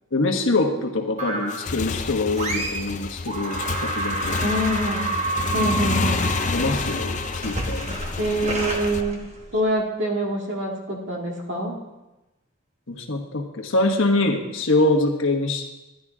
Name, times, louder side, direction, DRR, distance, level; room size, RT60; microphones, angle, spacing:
voice 1, 0.1-4.4 6.5-8.0 12.9-15.7, left 2 dB, 75° left, 3 dB, 1.3 m, -24 dB
sound 1, 1.2-1.8 2.3-3.0 3.3-9.7, right 2 dB, 30° right, 1.2 m, -30 dB
Motorcycle / Engine, 1.4-9.0, left 4 dB, 35° left, 0.4 m, -29 dB
voice 2, 4.4-5.1 5.5-6.3 8.2-9.2 9.5-11.7, right 1 dB, 60° right, -1 dB, 2.1 m, -25 dB
11.5 x 11.0 x 3.7 m, 1.0 s
head